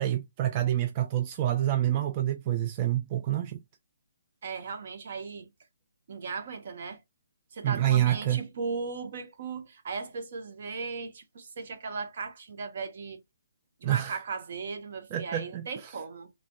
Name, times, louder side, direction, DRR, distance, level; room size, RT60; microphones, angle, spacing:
voice 1, 0.0-3.6 7.6-8.4 13.8-14.2 15.1-16.0, right 12 dB, 30° right, 0.3 m, -27 dB
voice 2, 4.4-5.5 6.1-7.0 7.5-13.2 13.8-16.3, right 4 dB, 55° right, 0.8 m, -37 dB
3.2 x 2.4 x 2.2 m
hypercardioid pair, 155°, 0 cm